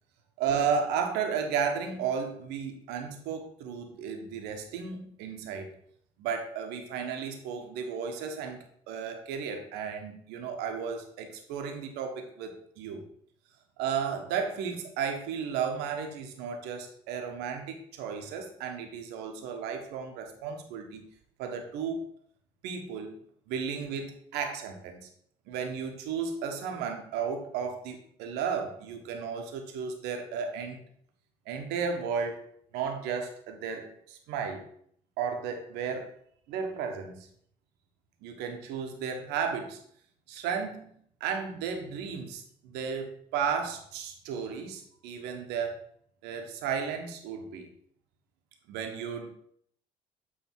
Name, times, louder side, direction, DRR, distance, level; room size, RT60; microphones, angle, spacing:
voice 1, 0.4-5.7 6.2-13.1 13.8-21.1 21.4-22.1 22.6-25.1 25.5-30.8 31.5-32.4 32.7-34.6 35.2-36.1 36.5-37.3 38.2-39.8 40.3-45.8 46.2-47.7 48.7-49.3, right 6 dB, 75° right, 5 dB, 1.2 m, -34 dB
8.2 x 3.5 x 4.6 m, 0.65 s
hypercardioid pair, 60°, 17 cm